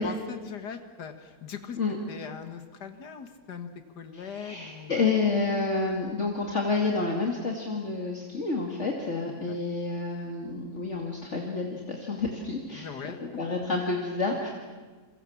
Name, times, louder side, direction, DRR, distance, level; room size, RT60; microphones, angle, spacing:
voice 1, 0.0-1.8 2.1-3.7 4.0-5.1 9.5-9.6 12.7-13.4, left 6 dB, 85° left, 8 dB, 2.1 m, -40 dB
voice 2, 4.1-14.5, left 3 dB, 45° left, 1 dB, 2.7 m, -29 dB
27.5 x 24.0 x 7.3 m, 1.4 s
omnidirectional pair, 1.7 m